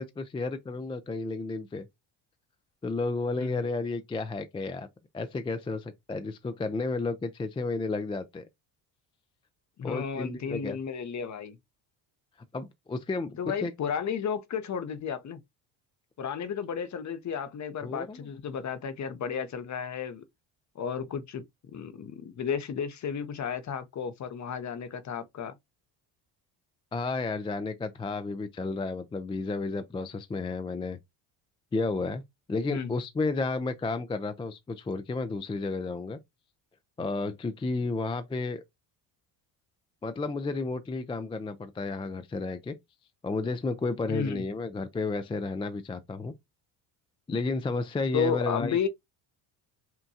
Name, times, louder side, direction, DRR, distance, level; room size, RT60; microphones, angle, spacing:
voice 1, 0.0-1.8 2.8-4.9 5.1-8.5 9.8-10.8 12.5-13.7 17.8-18.3 26.9-31.0 31.7-32.2 32.5-36.2 37.0-38.6 40.0-42.8 43.2-46.3 47.3-48.9, left 3 dB, 10° left, 0.4 m, -32 dB
voice 2, 9.8-11.6 13.4-15.4 16.2-20.2 20.8-25.5 32.7-32.9 44.1-44.4 48.1-48.9, left 7 dB, 40° left, 0.8 m, -33 dB
5.7 x 2.2 x 2.6 m
supercardioid pair, 90°, 46 cm